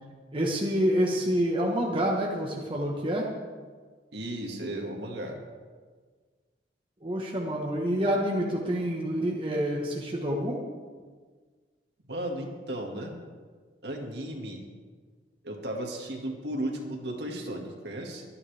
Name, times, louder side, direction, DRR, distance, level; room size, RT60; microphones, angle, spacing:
voice 1, 0.3-3.3 7.0-10.6, equal, 30° right, -2 dB, 1.4 m, -27 dB
voice 2, 4.1-5.4 12.1-13.1 13.8-14.6 15.4-18.2, right 1 dB, 65° right, 1 dB, 2.1 m, -35 dB
24.0 x 9.7 x 3.5 m, 1.5 s
head